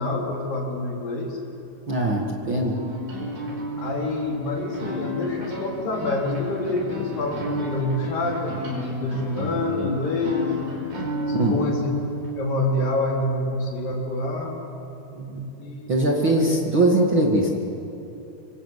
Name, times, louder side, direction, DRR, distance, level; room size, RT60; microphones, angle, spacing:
voice 1, 0.0-1.4 3.8-11.9 12.4-14.6 15.6-15.9 16.2-16.4, left 2 dB, 60° left, -1 dB, 5.4 m, -27 dB
voice 2, 1.9-2.8 11.3-11.6 15.1-15.5 15.9-17.5, right 1 dB, 40° right, -1 dB, 2.3 m, -21 dB
sound 1, 2.7-12.6, equal, 60° right, 6.7 m, -32 dB
26.0 x 24.5 x 8.2 m, 2.9 s
omnidirectional pair, 4.4 m